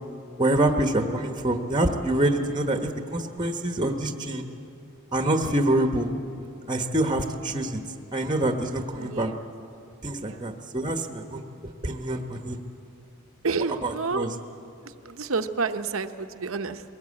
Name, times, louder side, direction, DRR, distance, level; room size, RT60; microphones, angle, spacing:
voice 1, 0.4-4.4 5.1-6.1 6.7-7.8 8.1-9.3 10.0-11.4 11.8-12.6 13.8-14.3, right 1 dB, 20° right, 5 dB, 1.1 m, -26 dB
voice 2, 9.0-9.4 10.2-10.5 13.4-14.3 14.8-16.8, right 4 dB, 60° right, 9 dB, 0.9 m, -30 dB
22.0 x 18.0 x 8.5 m, 2.7 s
head